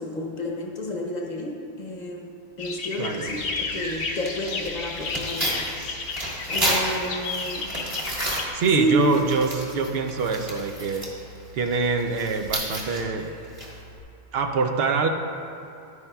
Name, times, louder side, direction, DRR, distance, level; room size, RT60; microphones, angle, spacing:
voice 1, 0.0-5.6 6.4-7.7 8.8-9.1, equal, 45° left, 0 dB, 0.9 m, -30 dB
sound 1, 2.6-8.5, left 3 dB, 85° left, 1.1 m, -32 dB
voice 2, 3.0-3.3 8.5-11.0 11.5-13.3 14.3-15.1, right 4 dB, 70° right, 5 dB, 0.8 m, -24 dB
Tearing, 3.3-14.0, right 1 dB, 30° right, 1.6 m, -33 dB
11.0 x 9.6 x 2.3 m, 2.7 s
omnidirectional pair, 1.1 m